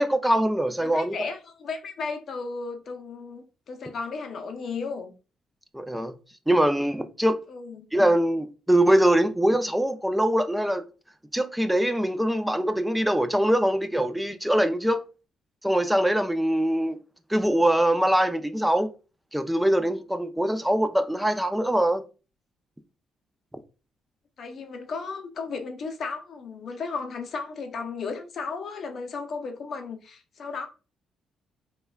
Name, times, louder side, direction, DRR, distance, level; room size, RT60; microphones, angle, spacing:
voice 1, 0.0-1.3 5.7-6.1 6.5-7.4 7.9-10.8 11.3-15.0 15.6-17.0 17.3-18.9 19.3-22.0, right 1 dB, 5° right, 0.3 m, -23 dB
voice 2, 0.8-5.1 7.5-7.8 24.4-30.7, left 4 dB, 55° left, 0.5 m, -34 dB
3.2 x 2.2 x 2.2 m
cardioid pair, 90°, 0 cm